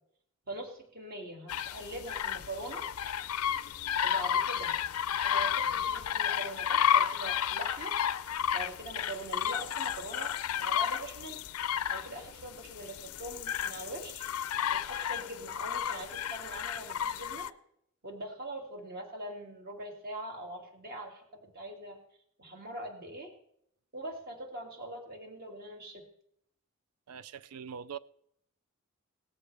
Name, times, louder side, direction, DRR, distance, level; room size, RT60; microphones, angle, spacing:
voice 1, 0.5-2.9 4.0-4.7 5.2-8.0 8.5-11.4 11.9-14.3 14.7-17.5 18.0-22.0 22.4-23.3 23.9-26.1, right 1 dB, 45° right, 2.3 m, -42 dB
sound 1, 1.5-17.5, left 9 dB, 80° left, 0.5 m, -32 dB
voice 2, 27.1-28.0, right 7 dB, 90° right, 0.4 m, -42 dB
18.0 x 14.0 x 3.3 m
head